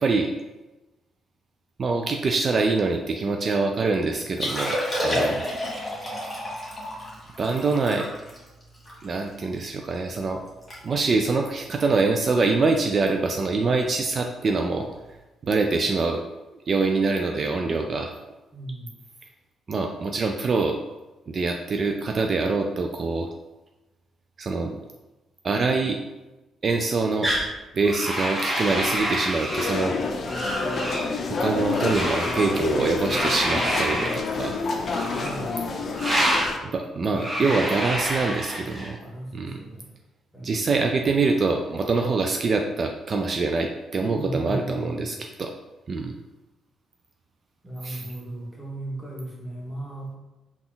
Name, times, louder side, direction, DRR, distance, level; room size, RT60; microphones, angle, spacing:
voice 1, 0.0-0.4 1.8-5.4 7.4-8.1 9.0-10.4 10.8-14.9 15.4-16.2 16.7-18.1 19.7-20.8 21.3-23.3 24.4-24.8 25.4-26.0 26.6-27.3 27.7-30.0 31.3-34.6 36.7-39.0 39.3-39.6 40.4-45.5 45.9-46.1 47.8-48.0, right 3 dB, 45° right, 3 dB, 0.3 m, -24 dB
Liquid, 4.3-9.7 10.1-10.2 10.5-10.8 11.0-11.3 11.9-12.1 13.6-13.7, left 1 dB, 20° left, 1.5 m, -30 dB
voice 2, 5.0-5.3 18.5-18.9 35.2-35.5 37.0-37.6 39.0-39.9 40.3-40.6 44.0-45.2 47.6-50.2, right 1 dB, ahead, -4 dB, 1.3 m, -36 dB
sound 1, 27.2-27.5 27.8-29.9 30.3-31.1 31.7-32.5 33.1-34.2 34.8-35.4 35.9-36.5 37.1-38.9, equal, 15° right, 1.2 m, -27 dB
sound 2, 29.5-36.6, left 3 dB, 50° left, 0.4 m, -28 dB
3.8 x 2.4 x 3.9 m, 1.1 s
cardioid pair, 90°, 0 cm